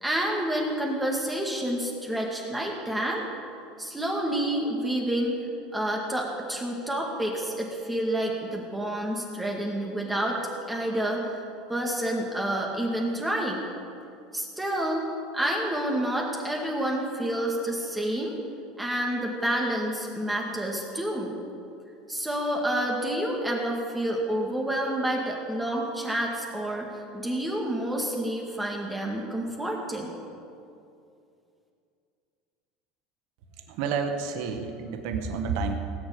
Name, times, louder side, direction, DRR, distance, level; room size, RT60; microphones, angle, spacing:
voice 1, 0.0-3.2 3.8-5.4 5.7-10.4 10.7-11.4 11.7-13.7 14.3-15.1 15.3-18.4 18.8-21.4 22.1-30.2, right 1 dB, 5° right, -2 dB, 2.0 m, -29 dB
voice 2, 33.7-35.7, right 5 dB, 65° right, 5 dB, 1.7 m, -30 dB
18.5 x 7.0 x 8.6 m, 2.5 s
supercardioid pair, 135°, 0 cm